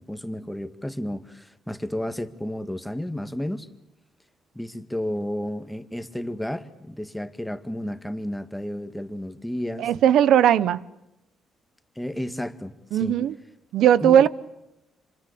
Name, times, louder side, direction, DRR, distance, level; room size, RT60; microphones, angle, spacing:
voice 1, 0.0-3.7 4.6-9.9 12.0-13.1 14.0-14.3, left 1 dB, 5° left, 1.8 m, -32 dB
voice 2, 9.8-10.8 12.9-13.3 13.7-14.3, right 10 dB, 80° right, 1.0 m, -18 dB
27.5 x 25.0 x 8.6 m
cardioid pair, 90°, 0 cm